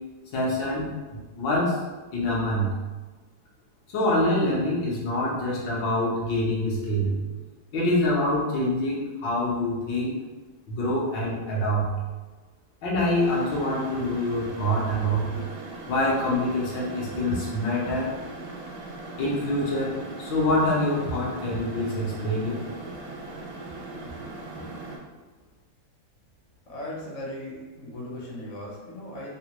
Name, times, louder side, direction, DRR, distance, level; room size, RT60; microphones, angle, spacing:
voice 1, 0.3-1.8 2.1-2.7 3.9-7.2 7.7-10.2 10.7-11.9 12.8-15.4 15.9-18.1 19.2-22.5, left 1 dB, 70° left, -5 dB, 1.5 m, -25 dB
sound 1, 13.2-25.0, right 2 dB, 70° right, 0.8 m, -40 dB
voice 2, 26.7-29.3, left 1 dB, 50° left, -5 dB, 0.9 m, -37 dB
4.1 x 2.1 x 2.9 m, 1.3 s
omnidirectional pair, 2.1 m